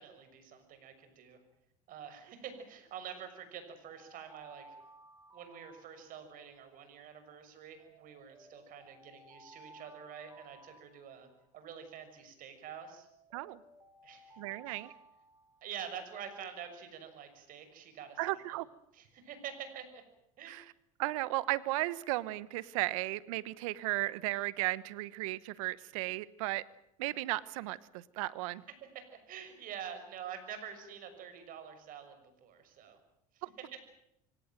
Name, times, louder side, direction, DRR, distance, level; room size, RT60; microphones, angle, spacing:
voice 1, 0.0-1.4 1.9-4.7 5.3-11.3 11.5-13.1 14.0-14.8 15.6-18.4 18.9-20.0 20.4-20.6 28.8-33.0 33.3-33.4 33.7-33.8, right 8 dB, 55° right, 8 dB, 6.4 m, -47 dB
Alarm, 3.8-6.5 7.8-11.5 12.8-16.0, right 1 dB, 25° right, 7.8 m, -58 dB
voice 2, 14.4-14.9 18.2-18.7 20.5-20.6 21.0-26.6 27.0-28.6 33.4-33.5, right 19 dB, 80° right, 19 dB, 1.1 m, -35 dB
25.0 x 17.5 x 9.0 m, 0.77 s
supercardioid pair, 90°, 17 cm